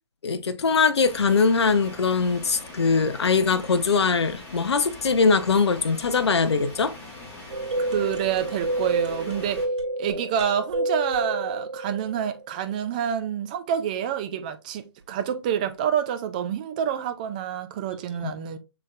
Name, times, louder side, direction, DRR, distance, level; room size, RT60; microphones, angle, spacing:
voice 1, 0.2-7.0 18.2-18.3, left 5 dB, 65° left, 0.5 m, -22 dB
sound 1, 1.0-9.7, left 2 dB, 10° left, 1.0 m, -42 dB
sound 2, 7.5-12.6, right 1 dB, 80° right, 1.9 m, -30 dB
voice 2, 7.8-9.6 10.0-18.6, right 9 dB, 15° right, 0.4 m, -27 dB
6.2 x 3.2 x 2.4 m
figure-of-eight pair, 135°, 15 cm